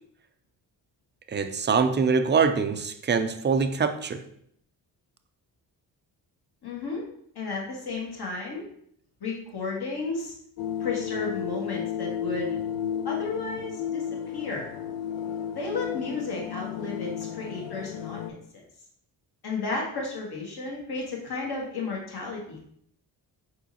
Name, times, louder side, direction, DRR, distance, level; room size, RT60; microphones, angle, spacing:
voice 1, 1.3-4.2, right 5 dB, 20° right, 9 dB, 0.5 m, -24 dB
voice 2, 6.6-7.1 7.3-8.6 9.2-10.3 10.8-12.6 13.0-14.7 15.5-18.6 19.4-22.7, left 3 dB, 50° left, -2 dB, 1.7 m, -33 dB
sound 1, 10.6-18.3, left 9 dB, 65° left, 0.6 m, -33 dB
4.5 x 4.0 x 2.7 m, 0.67 s
hypercardioid pair, 40°, 50 cm